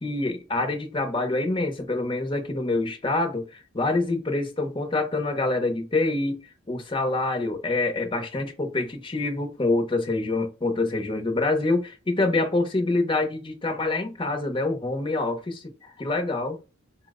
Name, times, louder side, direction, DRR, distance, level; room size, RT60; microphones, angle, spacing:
voice 1, 0.0-6.4 6.7-16.6, left 2 dB, 25° left, 0.8 m, -26 dB
4.3 x 2.1 x 3.6 m
head